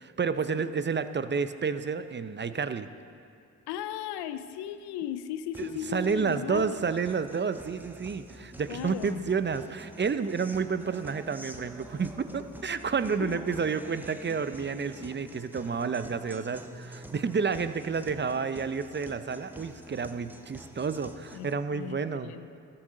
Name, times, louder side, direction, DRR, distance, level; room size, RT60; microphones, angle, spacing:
voice 1, 0.0-2.9 5.6-22.3, right 5 dB, 30° right, 12 dB, 0.6 m, -30 dB
voice 2, 3.7-6.8 8.7-9.3 13.2-13.4 21.3-22.6, left 10 dB, 85° left, 12 dB, 0.6 m, -36 dB
Guitar, 5.5-21.5, equal, 5° right, 1.1 m, -47 dB
13.5 x 12.0 x 3.9 m, 2.5 s
supercardioid pair, 50°, 39 cm